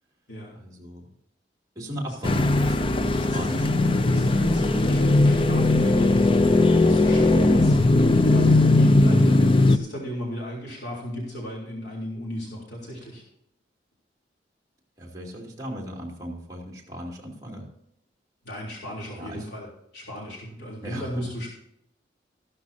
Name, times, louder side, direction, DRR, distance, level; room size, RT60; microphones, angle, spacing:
voice 1, 0.5-1.1 1.7-3.7 15.0-17.7 19.2-19.5 20.8-21.2, equal, 20° right, -2 dB, 2.8 m, -37 dB
sound 1, 2.2-9.8, left 2 dB, 30° left, 0.5 m, -19 dB
voice 2, 3.3-3.6 4.0-13.2 18.4-19.7 19.9-21.5, equal, 70° left, -3 dB, 3.6 m, -35 dB
14.5 x 12.5 x 2.8 m, 0.76 s
head